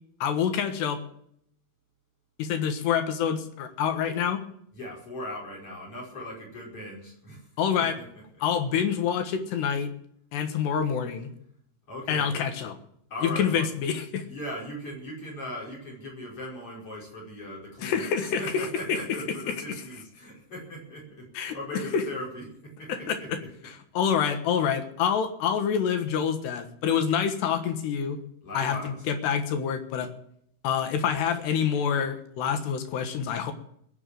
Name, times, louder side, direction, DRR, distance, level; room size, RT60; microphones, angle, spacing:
voice 1, 0.2-1.0 2.4-4.4 7.6-8.0 8.4-9.9 10.3-11.3 12.1-12.8 13.2-14.2 17.8-19.0 21.3-22.0 22.9-23.4 23.9-28.2 28.5-30.1 30.6-33.5, left 7 dB, 70° left, 7 dB, 3.3 m, -27 dB
voice 2, 4.7-7.5 7.8-8.0 11.9-12.4 13.1-13.7 14.3-23.5 28.4-29.1, left 1 dB, 30° left, -2 dB, 5.8 m, -39 dB
20.5 x 7.4 x 7.7 m, 0.68 s
omnidirectional pair, 5.5 m